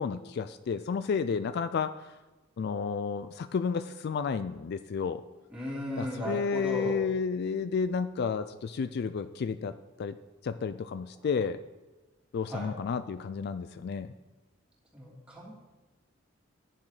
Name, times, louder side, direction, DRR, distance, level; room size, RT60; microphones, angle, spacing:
voice 1, 0.0-2.1 2.6-5.2 6.0-10.1 10.4-11.6 12.3-14.1, left 5 dB, 55° left, 12 dB, 0.3 m, -31 dB
voice 2, 5.5-7.0 11.2-11.3 12.5-12.7 14.9-15.6, equal, 5° right, -6 dB, 3.0 m, -36 dB
11.0 x 7.2 x 4.9 m, 1.2 s
head